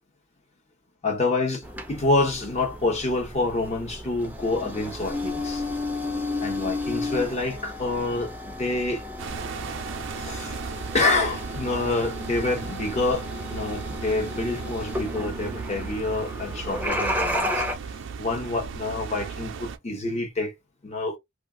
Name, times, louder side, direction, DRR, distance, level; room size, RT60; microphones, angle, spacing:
voice 1, 1.0-5.7 6.4-9.1 10.2-10.6 10.9-17.7 18.2-20.5 20.8-21.2, left 2 dB, 30° left, 0.9 m, -27 dB
sound 1, 1.6-17.7, left 1 dB, 10° right, 0.5 m, -33 dB
sound 2, 9.2-19.8, right 5 dB, 60° right, 0.4 m, -36 dB
2.4 x 2.4 x 3.4 m
head